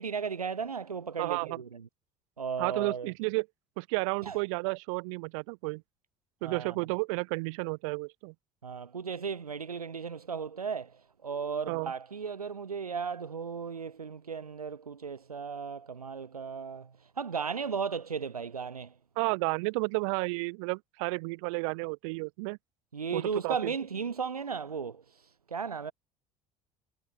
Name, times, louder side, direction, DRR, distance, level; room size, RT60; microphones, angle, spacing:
voice 1, 0.0-1.8 2.4-3.1 4.2-4.4 6.4-6.8 8.6-10.9 11.2-16.9 17.2-18.9 22.9-25.2 25.5-25.9, right 6 dB, 85° right, 0.5 m, -35 dB
voice 2, 1.2-1.6 2.6-3.5 3.8-5.8 6.4-8.3 11.7-11.9 19.2-22.6 23.1-23.7, right 29 dB, 60° right, 1.0 m, -32 dB
figure-of-eight pair, 60°, 19 cm